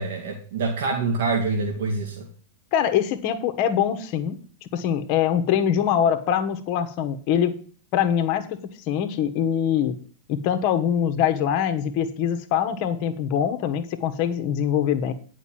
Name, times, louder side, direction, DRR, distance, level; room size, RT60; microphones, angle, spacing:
voice 1, 0.0-2.3, right 3 dB, 60° right, 1 dB, 1.7 m, -26 dB
voice 2, 2.7-4.4 4.7-7.6 7.9-10.0 10.3-15.1, left 9 dB, 45° left, 8 dB, 1.2 m, -23 dB
9.8 x 5.2 x 7.4 m, 0.42 s
figure-of-eight pair, 90°, 0 cm